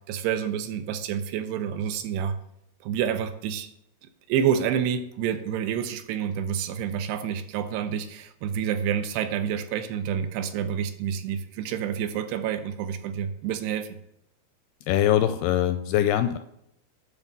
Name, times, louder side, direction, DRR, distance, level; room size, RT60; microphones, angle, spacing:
voice 1, 0.1-2.4 2.8-3.7 4.3-13.9, right 8 dB, 80° right, 9 dB, 2.7 m, -28 dB
voice 2, 14.9-16.4, left 11 dB, 85° left, 9 dB, 2.3 m, -22 dB
10.5 x 4.1 x 7.2 m, 0.76 s
omnidirectional pair, 4.9 m